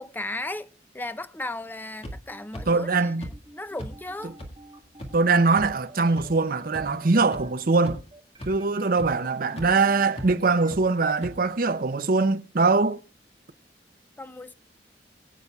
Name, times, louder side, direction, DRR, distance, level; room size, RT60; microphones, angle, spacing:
voice 1, 0.0-4.4 14.2-14.5, left 2 dB, 10° left, 0.4 m, -36 dB
sound 1, 2.0-2.1 2.5-2.6 3.2-3.3 3.8-3.9 4.4-4.5 5.0-5.1 5.6-5.7 6.2-6.3 6.7-6.8 7.3-7.4 7.8-8.1 8.4-8.5 9.0-9.1 9.6-9.7 10.2-10.3 10.7-10.8 11.2-11.3, equal, 35° left, 1.8 m, -36 dB
sound 2, 2.3-10.7, right 2 dB, 25° right, 1.4 m, -50 dB
voice 2, 2.7-3.3 5.1-8.0 8.5-13.0, right 3 dB, 55° right, 0.7 m, -22 dB
22.0 x 8.1 x 2.3 m
head